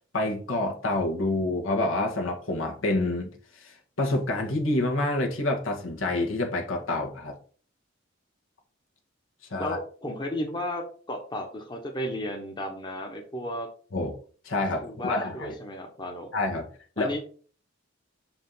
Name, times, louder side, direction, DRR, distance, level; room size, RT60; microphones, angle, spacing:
voice 1, 0.1-3.3 3.5-7.4 9.5-9.8 13.9-14.2 14.4-15.6 16.3-16.7 17.0-17.1, left 2 dB, 80° left, 1 dB, 1.7 m, -27 dB
voice 2, 9.6-13.7 14.8-16.3 17.0-17.2, left 1 dB, 25° left, 2 dB, 1.1 m, -33 dB
6.3 x 5.0 x 4.0 m, 0.42 s
head